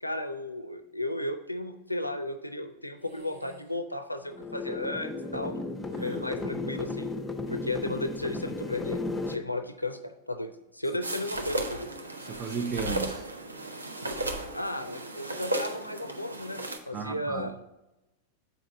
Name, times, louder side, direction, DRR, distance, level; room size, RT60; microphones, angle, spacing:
voice 1, 0.0-5.7 6.0-7.1 7.5-11.9 14.5-17.6, left 1 dB, 85° left, 9 dB, 0.4 m, -34 dB
sound 1, 3.0-3.8 4.1-4.6 5.9-6.4, right 3 dB, 50° right, 0.9 m, -52 dB
sound 2, 4.3-9.3, left 2 dB, 10° left, 0.7 m, -34 dB
sound 3, 11.0-16.8, right 1 dB, 80° right, 0.7 m, -35 dB
voice 2, 12.2-13.2 16.9-17.6, right 6 dB, 25° right, 5 dB, 0.5 m, -34 dB
7.7 x 5.0 x 3.8 m, 0.98 s
figure-of-eight pair, 90°, 0 cm